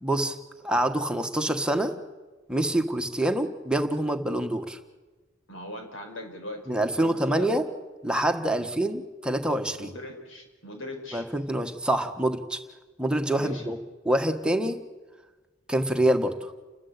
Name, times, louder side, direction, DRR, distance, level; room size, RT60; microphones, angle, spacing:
voice 1, 0.0-0.4 0.6-2.0 2.5-4.8 6.7-7.6 8.0-9.9 11.1-12.6 13.0-13.8 14.0-14.8 15.7-16.5, right 1 dB, 5° right, 5 dB, 1.5 m, -26 dB
voice 2, 5.5-7.6 8.8-8.9 9.8-11.3 13.3-13.7, left 1 dB, 75° left, 3 dB, 5.2 m, -40 dB
30.0 x 12.5 x 8.5 m, 1.2 s
head